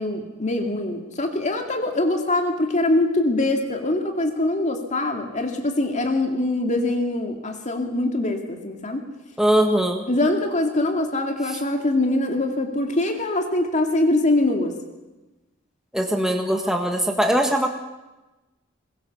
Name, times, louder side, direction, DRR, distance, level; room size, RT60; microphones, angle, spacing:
voice 1, 0.0-9.0 10.1-14.8, left 2 dB, 40° left, 4 dB, 2.5 m, -23 dB
voice 2, 9.4-10.0 15.9-17.7, right 1 dB, 5° right, 3 dB, 1.6 m, -21 dB
22.0 x 22.0 x 7.1 m, 1.1 s
head